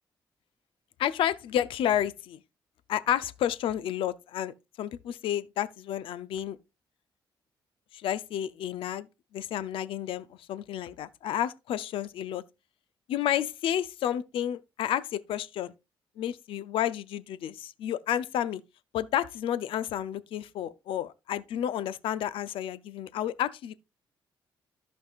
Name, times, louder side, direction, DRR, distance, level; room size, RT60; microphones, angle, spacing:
voice 1, 1.0-2.4 2.9-6.6 7.9-9.1 9.3-12.4 13.1-15.7 16.2-18.6 18.9-23.7, left 11 dB, 80° left, 0.6 m, -31 dB
13.5 x 5.5 x 2.4 m
cardioid pair, 85°, 9 cm